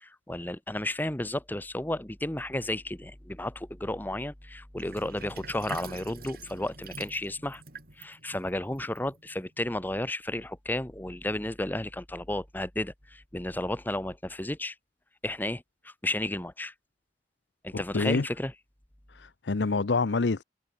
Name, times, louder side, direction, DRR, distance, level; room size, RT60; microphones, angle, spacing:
voice 1, 0.0-7.6 8.0-14.7 15.2-16.7 17.6-18.5, left 1 dB, 10° left, 1.1 m, -33 dB
Sink (filling or washing), 4.8-9.5, right 4 dB, 55° right, 4.3 m, -45 dB
voice 2, 17.7-18.3 19.1-20.4, left 3 dB, 85° left, 0.7 m, -27 dB
head